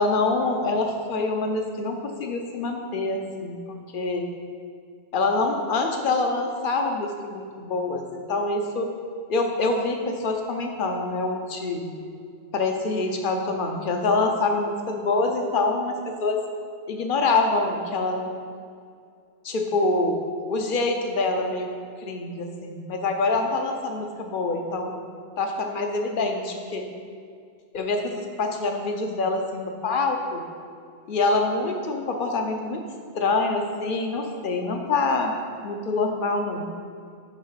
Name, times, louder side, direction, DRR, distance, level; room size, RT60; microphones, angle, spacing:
voice 1, 0.0-3.6 3.9-4.3 5.1-8.9 9.3-11.9 12.5-16.4 16.9-18.3 19.4-20.2 20.5-21.7 22.0-24.9 25.4-26.8 27.7-30.4 31.1-32.8 33.1-35.3 35.6-36.7, left 3 dB, 50° left, 3 dB, 0.9 m, -25 dB
10.5 x 3.7 x 5.7 m, 2.3 s
omnidirectional pair, 1.2 m